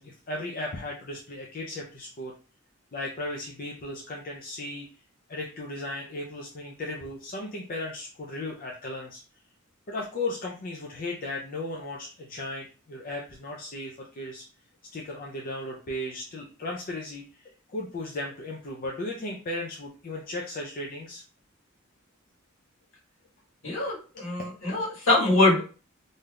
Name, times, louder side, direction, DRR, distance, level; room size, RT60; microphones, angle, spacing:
voice 1, 0.0-2.3 2.9-4.9 5.3-9.2 9.9-14.4 14.9-21.2 24.2-24.3, left 2 dB, 45° left, -2 dB, 0.5 m, -36 dB
voice 2, 23.6-25.7, left 2 dB, 65° left, -4 dB, 1.4 m, -23 dB
3.3 x 2.7 x 2.3 m, 0.36 s
head